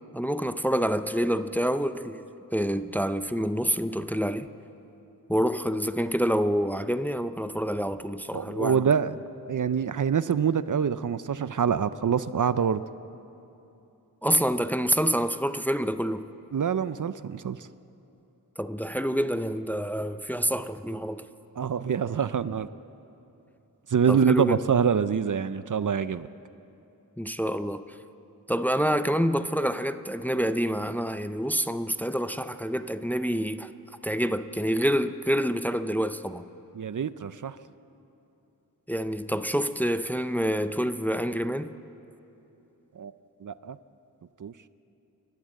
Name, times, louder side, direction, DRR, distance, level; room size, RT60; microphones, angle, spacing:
voice 1, 0.1-2.2 2.5-4.5 5.3-8.8 14.2-16.3 18.6-21.2 24.1-24.6 27.2-27.8 28.5-33.7 34.0-36.5 38.9-41.7, equal, 5° left, 0.5 m, -27 dB
voice 2, 8.3-9.2 9.5-12.8 16.5-17.7 21.6-22.7 23.9-26.3 36.7-37.6 42.9-43.1 43.4-43.8 44.4-44.5, right 7 dB, 55° right, 0.5 m, -25 dB
29.5 x 11.5 x 7.6 m
wide cardioid pair, 80°, 36 cm